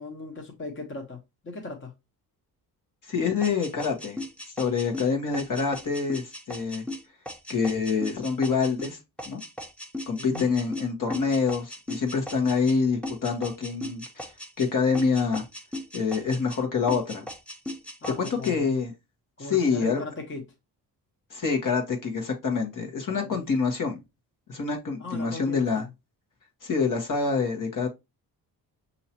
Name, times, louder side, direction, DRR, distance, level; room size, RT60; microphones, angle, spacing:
voice 1, 0.0-1.9 10.2-10.5 18.0-18.7 19.4-20.4 23.1-23.4 25.0-25.9, left 3 dB, 30° left, 1.2 m, -38 dB
voice 2, 3.1-4.2 4.6-6.8 7.5-9.0 9.2-9.4 10.1-14.2 14.6-15.4 15.9-17.2 18.2-18.9 19.4-20.0 21.3-24.0 24.5-25.8 26.6-27.9, left 5 dB, 55° left, 1.4 m, -26 dB
sound 1, 3.4-12.8 13.0-14.7 14.9-16.6 16.9-18.5, left 1 dB, 5° left, 0.8 m, -38 dB
5.6 x 2.9 x 2.9 m
cardioid pair, 85°, 38 cm